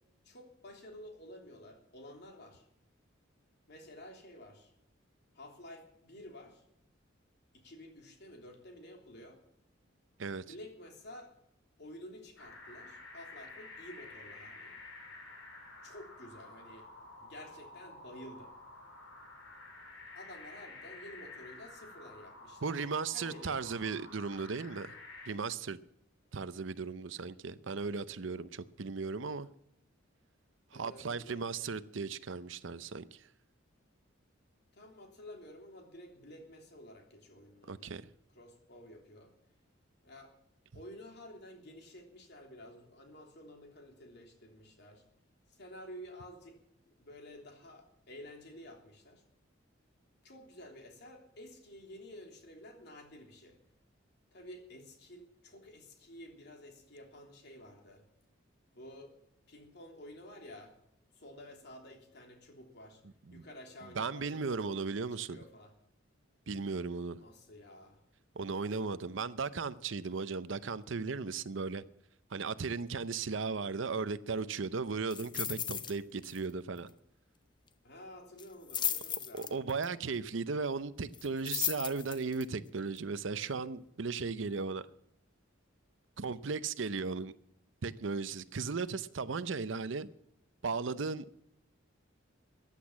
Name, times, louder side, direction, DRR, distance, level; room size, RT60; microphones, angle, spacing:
voice 1, 0.2-2.7 3.7-4.7 5.3-6.6 7.5-9.4 10.4-11.3 11.8-14.8 15.8-16.9 17.2-18.5 20.1-22.8 23.1-24.0 30.7-31.4 34.7-38.0 38.3-39.3 40.0-40.3 40.7-45.0 45.5-46.6 46.8-49.2 50.2-53.6 54.3-58.0 58.7-59.1 59.5-60.7 61.1-63.0 63.3-64.6 65.3-65.7 67.2-68.0 77.8-79.7, left 1 dB, 55° left, 3.3 m, -51 dB
sound 1, 12.4-25.3, left 2 dB, 75° left, 5.4 m, -51 dB
voice 2, 22.6-24.9 25.3-25.8 26.3-29.5 30.7-33.2 37.7-38.0 63.3-63.4 63.9-65.4 66.5-67.2 68.4-71.8 72.3-76.9 79.3-84.9 86.2-87.3 87.8-90.1 90.6-91.3, right 4 dB, 65° right, 0.7 m, -36 dB
sound 2, 75.1-76.0 76.2-76.5 76.8-76.9 78.4-79.9 81.1-82.4 83.0-83.1, left 8 dB, 25° left, 0.6 m, -35 dB
15.0 x 10.0 x 7.3 m
head